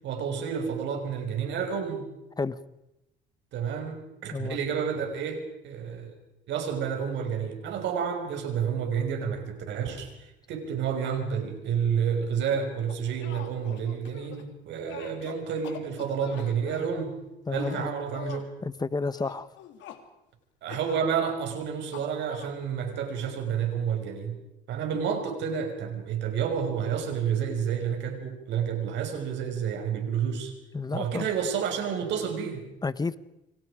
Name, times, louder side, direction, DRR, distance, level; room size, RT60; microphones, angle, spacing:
voice 1, 0.0-2.0 3.5-6.1 6.5-17.1 17.5-18.5 20.6-24.4 24.7-30.5 30.9-32.6, right 7 dB, 70° right, 5 dB, 5.9 m, -30 dB
sound 1, 12.9-14.5 14.9-16.9 17.6-18.5 19.1-20.0 20.7-21.1 21.9-22.5, left 10 dB, 70° left, 3.2 m, -44 dB
voice 2, 17.5-17.9 18.6-19.5 30.7-31.3 32.8-33.2, left 4 dB, 20° left, 15 dB, 1.3 m, -30 dB
29.5 x 25.0 x 5.1 m, 0.89 s
supercardioid pair, 85°, 19 cm